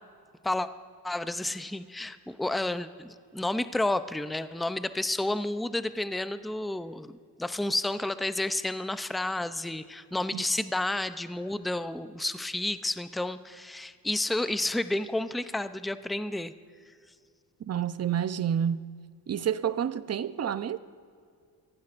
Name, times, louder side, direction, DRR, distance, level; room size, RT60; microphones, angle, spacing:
voice 1, 1.0-16.5, left 2 dB, ahead, 0.6 m, -31 dB
voice 2, 17.7-18.9 19.3-20.8, right 9 dB, 40° right, 0.7 m, -29 dB
24.0 x 16.0 x 2.6 m
supercardioid pair, 70°, 41 cm